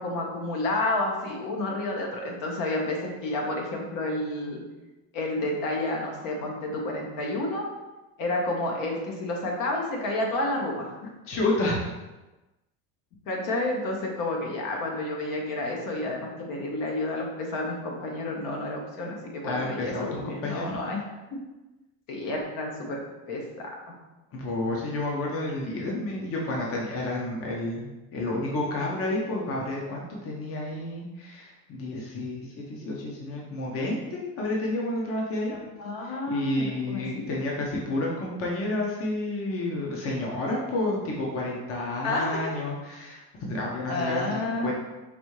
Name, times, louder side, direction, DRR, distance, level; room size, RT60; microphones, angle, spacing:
voice 1, 0.0-4.6 5.1-7.6 8.2-10.9 13.3-21.0 21.3-21.4 22.1-23.0 23.3-23.7 35.5-37.2 42.0-42.4 43.9-44.7, left 2 dB, 60° left, 0 dB, 1.1 m, -30 dB
voice 2, 11.3-11.9 19.4-20.7 24.3-35.6 36.0-43.2 43.5-44.7, left 2 dB, 40° left, -2 dB, 0.9 m, -30 dB
5.2 x 2.7 x 3.1 m, 1.1 s
supercardioid pair, 120°, 35 cm